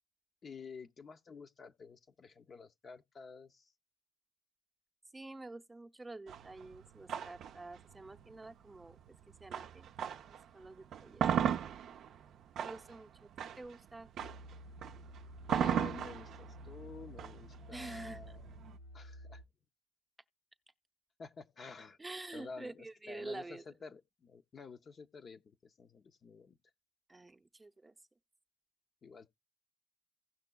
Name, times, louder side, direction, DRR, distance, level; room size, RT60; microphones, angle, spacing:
voice 1, 0.4-3.7 15.5-18.6 18.9-19.4 21.2-26.6 29.0-29.3, left 5 dB, 50° left, 0.5 m, -50 dB
voice 2, 5.1-9.0 9.4-10.1 10.5-11.9 12.6-13.3 13.5-14.1 17.7-18.2 22.0-23.6 27.1-27.9, right 2 dB, 20° right, 0.6 m, -48 dB
sound 1, 6.3-10.4 10.8-18.8, right 9 dB, 75° right, 0.4 m, -37 dB
sound 2, 14.2-19.4, equal, 85° left, 0.9 m, -52 dB
16.5 x 5.9 x 2.2 m
cardioid pair, 90°, 0 cm